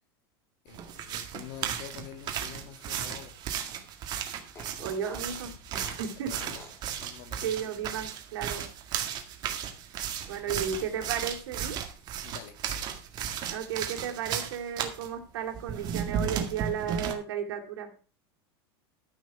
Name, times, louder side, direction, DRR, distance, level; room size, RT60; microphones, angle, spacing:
voice 1, 0.6-3.4 6.3-6.6 7.0-7.5 10.4-10.7 12.2-12.6, left 10 dB, 50° left, 9 dB, 2.1 m, -46 dB
sound 1, 0.7-15.1 15.5-17.1, right 8 dB, 35° right, 2.0 m, -35 dB
Fart, 1.8-3.6 3.9-4.0 4.5-6.9, left 2 dB, 20° left, 4.0 m, -50 dB
voice 2, 4.8-6.5 7.4-8.7 10.2-11.8 13.5-17.9, right 8 dB, 85° right, 4 dB, 2.9 m, -34 dB
13.5 x 6.3 x 5.6 m, 0.37 s
supercardioid pair, 160°, 13 cm